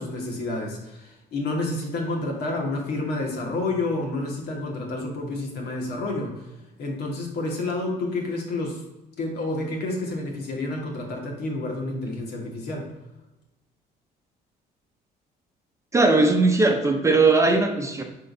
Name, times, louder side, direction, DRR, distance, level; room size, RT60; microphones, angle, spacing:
voice 1, 0.0-6.5 6.8-8.8 9.2-12.9, left 2 dB, 70° left, 0 dB, 1.9 m, -29 dB
voice 2, 15.9-18.0, right 3 dB, 15° right, 4 dB, 0.7 m, -19 dB
11.0 x 3.8 x 2.7 m, 1.0 s
cardioid pair, 110°, 17 cm